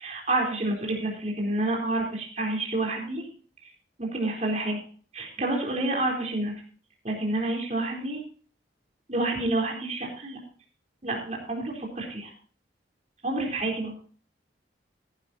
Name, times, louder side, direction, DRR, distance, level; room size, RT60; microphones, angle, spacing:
voice 1, 0.0-3.3 4.0-4.8 5.1-6.5 7.0-8.2 9.1-10.4 11.0-12.3 13.2-13.9, right 2 dB, 40° right, 0 dB, 3.9 m, -28 dB
17.0 x 11.5 x 2.8 m, 0.41 s
head